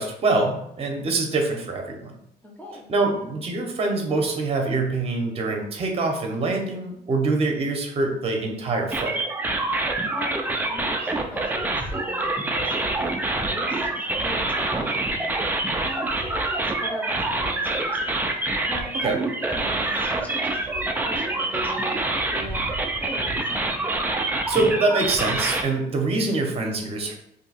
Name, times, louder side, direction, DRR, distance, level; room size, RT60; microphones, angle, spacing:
voice 1, 0.0-2.1 2.9-9.2 18.9-19.2 24.5-27.1, right 3 dB, 35° right, 2 dB, 0.8 m, -24 dB
voice 2, 2.4-2.9 10.0-18.2 18.7-18.9 19.2-23.7, left 1 dB, 10° left, -1 dB, 0.7 m, -39 dB
sound 1, 8.9-25.6, right 2 dB, 10° right, 0.3 m, -26 dB
2.7 x 2.2 x 4.1 m, 0.76 s
cardioid pair, 110°, 17 cm